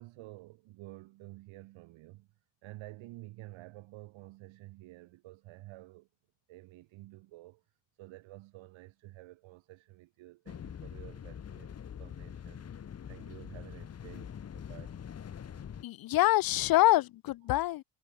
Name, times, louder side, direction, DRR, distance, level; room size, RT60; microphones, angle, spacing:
voice 1, 0.0-6.1 6.5-15.0, right 19 dB, 85° right, 2.8 m, -51 dB
sound 1, 10.5-15.8, left 8 dB, 30° left, 3.5 m, -44 dB
voice 2, 15.8-17.8, left 16 dB, 50° left, 0.7 m, -25 dB
cardioid pair, 170°, 45 cm